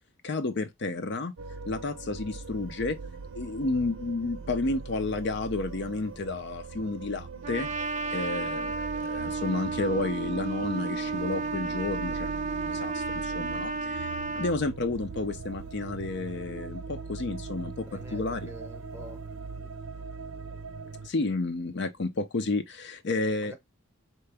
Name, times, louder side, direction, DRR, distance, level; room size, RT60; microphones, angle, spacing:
voice 1, 0.2-1.3 1.7-3.0 3.3-7.7 8.1-14.1 14.3-18.5 21.0-23.5, left 3 dB, 55° left, 0.5 m, -31 dB
sound 1, 1.4-21.1, right 4 dB, 80° right, 0.6 m, -41 dB
Trumpet, 7.4-14.6, right 4 dB, 35° right, 0.4 m, -32 dB
voice 2, 17.9-19.2 19.6-19.7 23.4-23.5, left 1 dB, 10° right, 0.9 m, -46 dB
4.5 x 2.9 x 3.3 m
head